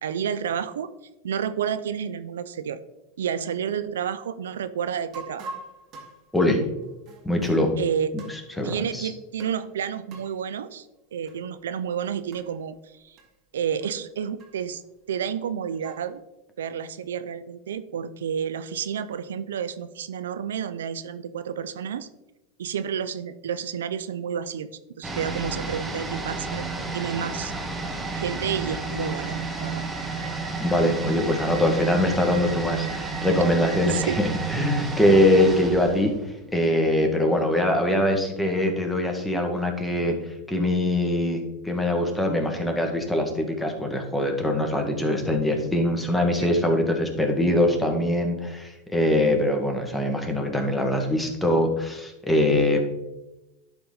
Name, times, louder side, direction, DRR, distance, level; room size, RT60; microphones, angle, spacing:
voice 1, 0.0-0.9 1.2-2.8 3.2-5.5 7.8-8.1 8.6-10.9 11.1-12.7 13.0-13.2 13.5-14.8 15.1-16.2 16.6-22.1 22.6-24.7 25.0-26.7 26.9-27.5 28.1-29.8 33.9-34.2 46.4-46.5 52.7-52.8, right 8 dB, 85° right, 13 dB, 0.4 m, -30 dB
sound 1, 5.1-7.7 8.2-8.9 9.4-9.7 10.1-10.4 11.2-11.4 11.7-11.8 12.3-12.6 13.2-13.3 13.8-13.9 14.4-14.8 15.5-16.2, right 3 dB, 45° right, 1.9 m, -43 dB
voice 2, 6.3-6.6 7.2-7.7 8.6-9.1 30.2-36.1 36.5-40.2 40.5-52.8, left 1 dB, 5° left, 3 dB, 1.6 m, -23 dB
sound 2, 25.0-36.8 37.0-37.1, right 4 dB, 15° right, 1.3 m, -31 dB
11.5 x 4.2 x 3.9 m, 0.97 s
hypercardioid pair, 105°, 0 cm